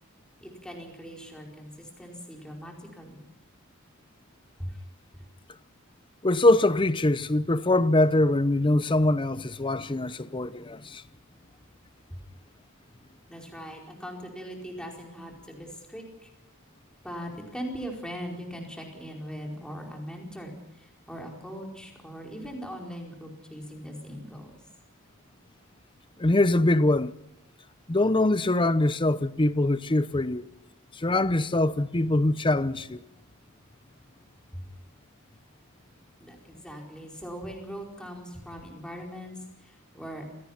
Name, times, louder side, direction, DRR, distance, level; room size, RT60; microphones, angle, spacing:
voice 1, 0.4-3.2 4.6-4.8 5.1-5.2 12.1-12.2 13.3-16.3 17.0-24.6 34.5-34.6 36.2-40.3, equal, 5° left, 4.7 m, -40 dB
voice 2, 6.2-11.0 26.2-27.1 27.9-30.4 30.9-33.0, left 2 dB, 20° left, 0.7 m, -23 dB
27.5 x 17.5 x 5.9 m
head